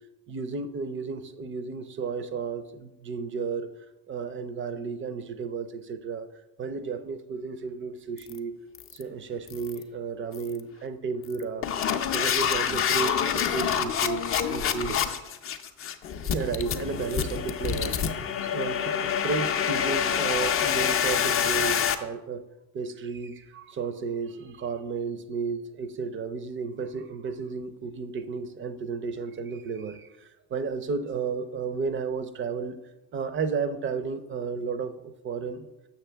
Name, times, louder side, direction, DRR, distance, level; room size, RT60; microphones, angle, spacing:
voice 1, 0.3-3.7 4.1-6.3 6.6-8.5 8.9-11.7 12.1-15.3 16.2-18.0 18.4-22.4 22.7-32.8 33.1-35.7, right 5 dB, 30° right, 11 dB, 0.5 m, -33 dB
sound 1, 8.2-8.4 8.7-9.0 9.5-9.8 10.3-10.6 11.2-21.9, left 8 dB, 30° left, 0.4 m, -27 dB
7.1 x 5.9 x 3.4 m, 0.99 s
supercardioid pair, 115°, 45 cm